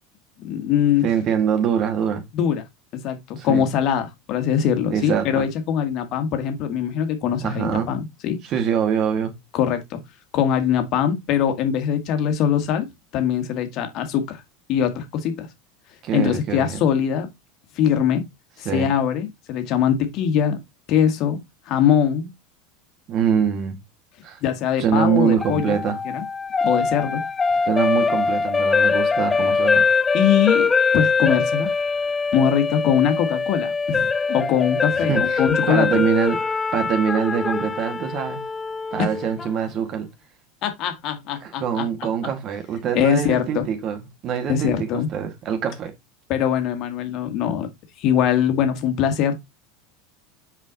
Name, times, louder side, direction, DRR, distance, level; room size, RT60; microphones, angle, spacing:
voice 1, 0.4-1.0 2.3-2.6 2.9-8.4 9.5-10.0 10.3-12.9 13.1-14.4 14.7-15.5 16.1-17.3 17.7-18.2 18.6-20.6 20.9-21.4 21.7-22.3 24.4-25.8 26.0-26.2 26.6-27.2 30.1-31.7 32.3-36.0 39.0-39.1 40.6-41.9 42.9-43.6 44.5-45.1 46.3-47.7 48.0-49.3, left 9 dB, 50° left, 1.6 m, -22 dB
voice 2, 1.0-2.3 3.4-3.7 4.9-5.5 7.4-7.9 8.4-9.3 16.0-16.9 18.6-18.9 23.1-23.8 24.2-24.4 24.8-26.0 27.7-29.9 35.0-36.4 36.7-38.4 38.9-40.1 41.4-45.9, right 8 dB, 45° right, 2.1 m, -24 dB
sound 1, 25.4-39.5, left 5 dB, 20° left, 0.3 m, -22 dB
5.7 x 4.9 x 3.9 m
hypercardioid pair, 80°, 0 cm